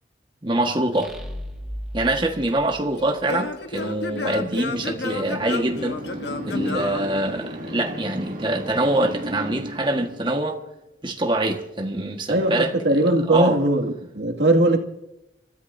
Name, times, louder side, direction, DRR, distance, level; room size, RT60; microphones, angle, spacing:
voice 1, 0.4-1.1 1.9-6.0 6.5-10.6 11.0-12.7 13.3-13.6, right 1 dB, 25° right, 1.5 m, -24 dB
sound 1, 0.9-3.6, equal, ahead, 2.0 m, -36 dB
Singing / Plucked string instrument, 2.0-7.9, left 2 dB, 70° left, 1.3 m, -32 dB
sound 2, 3.7-10.7, right 1 dB, 45° right, 2.2 m, -36 dB
voice 2, 12.3-14.8, right 2 dB, 80° right, 2.3 m, -20 dB
27.0 x 13.5 x 2.7 m
head